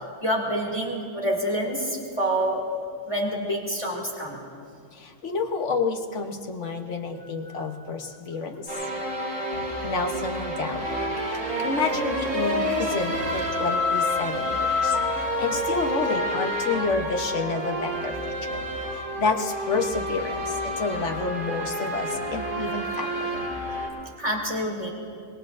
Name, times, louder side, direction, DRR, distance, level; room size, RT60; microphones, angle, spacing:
voice 1, 0.2-2.6 3.1-4.4 7.2-7.8 24.2-24.9, right 1 dB, 20° left, -2 dB, 2.5 m, -27 dB
voice 2, 4.9-8.7 9.8-10.9 11.3-18.2 18.4-18.5 18.9-23.3, left 4 dB, 50° left, 3 dB, 1.3 m, -29 dB
sound 1, 8.7-23.9, left 1 dB, 60° right, 3.8 m, -28 dB
26.0 x 21.5 x 2.6 m, 2.4 s
omnidirectional pair, 1.6 m